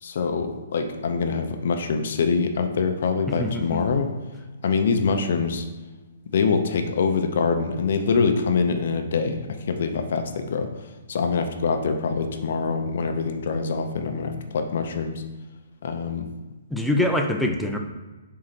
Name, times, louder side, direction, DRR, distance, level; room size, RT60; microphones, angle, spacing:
voice 1, 0.0-4.1 4.6-5.7 6.3-10.7 11.1-15.2 15.8-16.3, left 5 dB, 50° left, 6 dB, 0.6 m, -24 dB
voice 2, 3.3-3.8 16.7-17.8, left 1 dB, ahead, 2 dB, 0.3 m, -24 dB
4.7 x 3.8 x 5.7 m, 1.2 s
hypercardioid pair, 175°, 0 cm